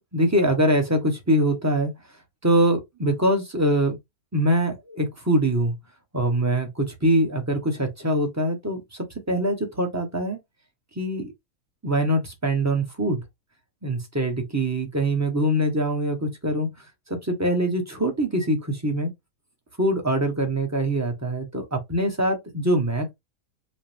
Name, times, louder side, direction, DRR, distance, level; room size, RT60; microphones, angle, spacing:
voice 1, 0.0-1.9 2.4-4.0 4.3-5.7 6.1-10.4 11.0-11.3 11.8-13.2 13.8-16.7 17.1-19.1 19.8-23.1, right 1 dB, 15° right, 0.8 m, -23 dB
5.2 x 2.2 x 3.3 m
omnidirectional pair, 1.6 m